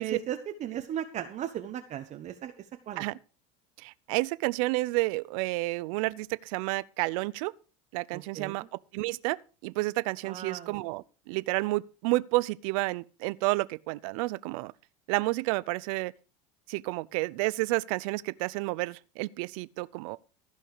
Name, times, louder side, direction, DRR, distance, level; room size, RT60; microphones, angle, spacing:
voice 1, 0.0-3.0 8.1-8.7 10.2-10.8, right 10 dB, 40° right, 1.2 m, -36 dB
voice 2, 3.8-7.5 7.9-8.6 8.9-9.4 9.6-14.7 15.1-16.1 16.7-20.2, right 22 dB, 70° right, 0.6 m, -30 dB
15.5 x 5.5 x 6.5 m
supercardioid pair, 115°, 18 cm